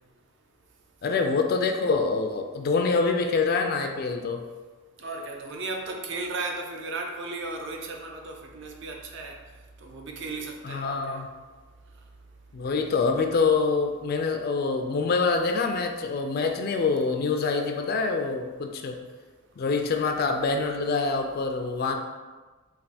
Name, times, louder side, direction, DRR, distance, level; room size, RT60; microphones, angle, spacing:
voice 1, 1.0-4.4 10.6-11.3 12.5-19.0 19.6-22.0, left 4 dB, 45° left, 4 dB, 0.3 m, -25 dB
voice 2, 5.0-9.4 9.8-11.2, right 3 dB, 55° right, 2 dB, 0.5 m, -35 dB
3.4 x 2.5 x 4.0 m, 1.3 s
head